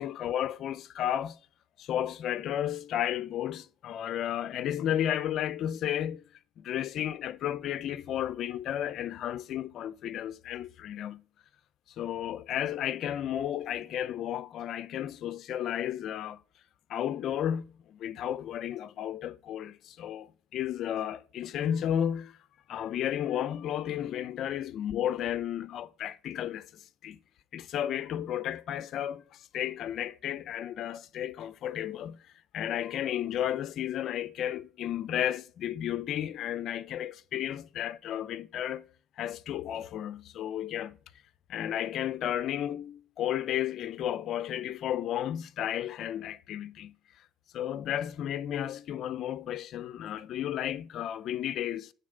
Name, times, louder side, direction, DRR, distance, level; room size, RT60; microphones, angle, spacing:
voice 1, 0.0-1.4 1.8-6.2 6.6-11.2 12.0-16.4 16.9-22.4 22.7-27.2 27.5-32.2 32.5-38.9 39.2-41.0 41.5-46.9 47.5-51.9, left 10 dB, 60° left, 0.6 m, -33 dB
9.4 x 4.1 x 6.5 m
cardioid pair, 100°, 0 cm